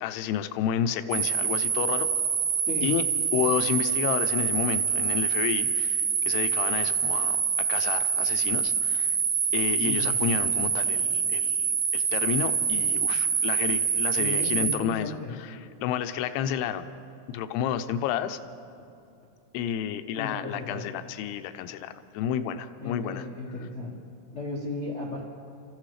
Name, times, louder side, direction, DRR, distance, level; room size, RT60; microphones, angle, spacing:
voice 1, 0.0-2.1 2.8-3.0 3.3-9.1 9.5-16.9 17.3-18.4 19.5-23.3, left 9 dB, 85° left, 10 dB, 2.7 m, -31 dB
sound 1, 1.1-14.8, right 6 dB, 65° right, 2.5 m, -26 dB
voice 2, 9.8-10.3 14.2-15.3 20.2-20.8 22.8-23.9 24.3-25.2, left 2 dB, 55° left, -5 dB, 0.7 m, -35 dB
30.0 x 14.5 x 3.3 m, 2.7 s
omnidirectional pair, 4.7 m